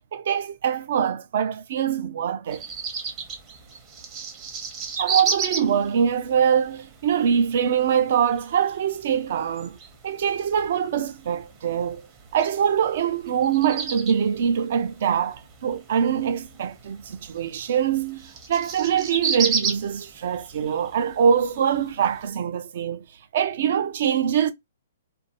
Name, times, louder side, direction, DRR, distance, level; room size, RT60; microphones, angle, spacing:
voice 1, 0.1-2.6 5.0-9.8 10.0-12.0 12.3-23.0 23.3-24.5, right 8 dB, 60° right, 0.5 m, -23 dB
sound 1, 2.5-22.3, right 5 dB, 30° right, 0.8 m, -34 dB
2.6 x 2.2 x 2.8 m
hypercardioid pair, 130°, 0 cm